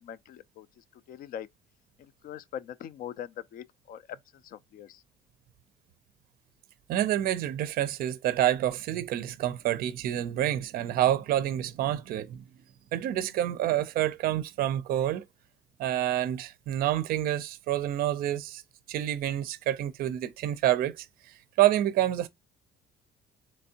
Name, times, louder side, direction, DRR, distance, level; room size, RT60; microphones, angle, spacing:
voice 1, 0.0-1.5 2.0-5.0, left 10 dB, 55° left, 0.4 m, -42 dB
voice 2, 6.9-12.4 12.9-15.2 15.8-18.6 18.9-22.3, right 12 dB, 60° right, 0.4 m, -28 dB
3.4 x 3.0 x 2.7 m
cardioid pair, 110°, 17 cm